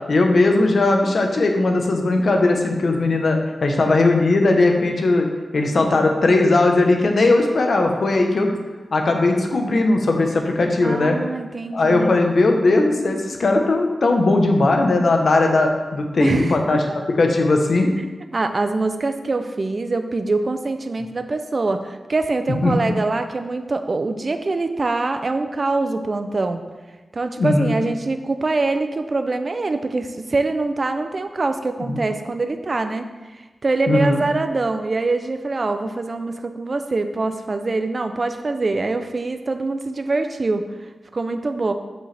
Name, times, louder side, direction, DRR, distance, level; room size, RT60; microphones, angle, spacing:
voice 1, 0.1-5.3 5.5-8.5 8.9-11.2 11.7-16.8 17.2-17.9 22.5-23.0 27.4-27.8 31.9-32.0 33.9-34.2, left 2 dB, 60° left, 3 dB, 0.9 m, -18 dB
voice 2, 10.8-12.2 16.2-16.8 18.3-26.6 27.1-33.1 33.3-40.6 41.1-41.7, right 3 dB, 40° right, 7 dB, 0.4 m, -24 dB
7.5 x 6.2 x 3.4 m, 1.2 s
wide cardioid pair, 145°, 0 cm